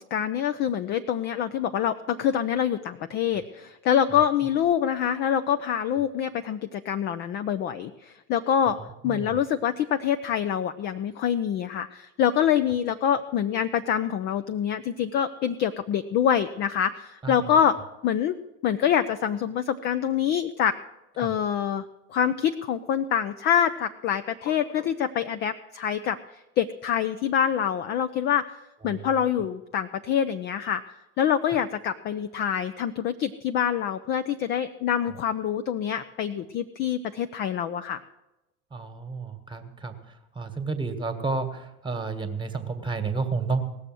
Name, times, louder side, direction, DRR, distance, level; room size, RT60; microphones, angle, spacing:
voice 1, 0.1-8.8 9.0-18.4 18.6-20.8 21.2-21.8 22.1-26.2 26.6-28.5 28.8-30.8 31.2-38.0, left 9 dB, 25° left, 9 dB, 0.4 m, -25 dB
voice 2, 9.0-9.4 17.2-17.4 21.2-21.3 28.9-29.0 38.7-40.0 40.3-43.6, right 4 dB, 10° right, 7 dB, 1.5 m, -31 dB
17.5 x 7.0 x 7.6 m, 0.96 s
figure-of-eight pair, 85°, 45 cm